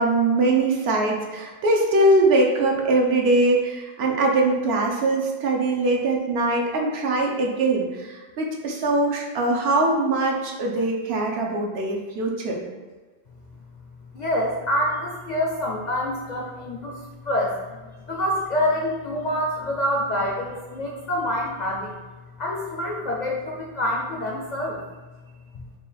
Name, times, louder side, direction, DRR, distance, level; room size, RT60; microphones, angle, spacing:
voice 1, 0.0-12.6, right 2 dB, 70° right, 0 dB, 0.9 m, -22 dB
voice 2, 14.1-17.0 17.2-17.8 18.1-21.9 22.4-24.8, left 1 dB, 55° left, -1 dB, 0.5 m, -26 dB
4.6 x 2.2 x 3.3 m, 1.3 s
omnidirectional pair, 1.1 m